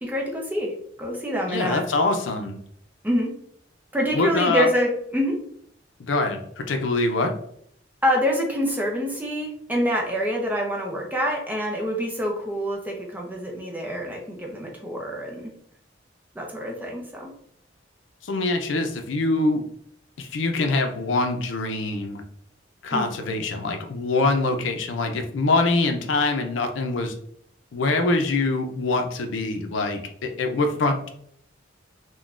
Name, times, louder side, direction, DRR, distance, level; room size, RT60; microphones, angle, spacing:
voice 1, 0.0-1.8 3.0-3.3 3.9-5.4 8.0-15.5 16.3-17.3 22.9-23.1, equal, 10° right, -1 dB, 0.5 m, -26 dB
voice 2, 1.5-2.6 4.1-4.7 6.0-7.3 18.2-19.6 20.2-22.2 22.8-27.1 27.7-31.1, left 3 dB, 85° left, 5 dB, 0.5 m, -24 dB
3.7 x 2.2 x 2.4 m, 0.68 s
head